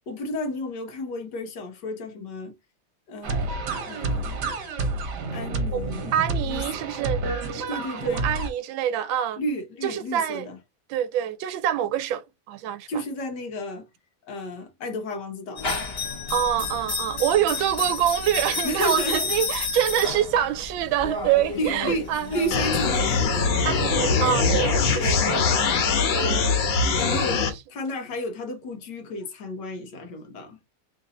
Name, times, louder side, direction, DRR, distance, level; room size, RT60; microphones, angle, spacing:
voice 1, 0.1-2.5 3.1-3.6 3.9-4.5 5.3-6.1 6.5-6.9 7.7-8.3 9.4-10.6 12.9-13.9 14.3-15.7 18.6-19.3 21.6-23.6 26.2-26.7 26.9-30.6, left 1 dB, 65° left, 1.6 m, -32 dB
sound 1, 3.2-8.5, right 2 dB, 65° right, 1.5 m, -29 dB
voice 2, 5.7-7.2 7.5-7.8 8.1-9.4 9.8-10.5 10.9-13.0 16.3-22.4 23.6-26.8, right 10 dB, 85° right, 1.4 m, -26 dB
sound 2, 15.6-25.8, left 4 dB, 35° left, 1.3 m, -32 dB
sound 3, 22.5-27.5, left 4 dB, 90° left, 1.8 m, -22 dB
3.8 x 2.6 x 4.0 m
omnidirectional pair, 2.1 m